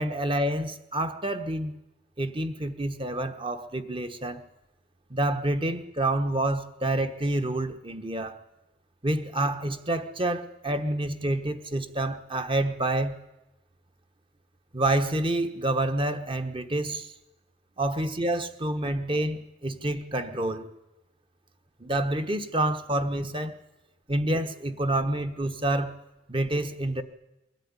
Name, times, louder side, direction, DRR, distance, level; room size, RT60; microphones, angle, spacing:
voice 1, 0.0-1.7 2.2-4.4 5.1-8.4 9.0-13.2 14.7-17.1 17.8-20.7 21.8-23.6 24.1-26.0 26.3-27.0, right 1 dB, 30° right, 8 dB, 1.2 m, -28 dB
22.0 x 13.5 x 9.8 m, 0.96 s
head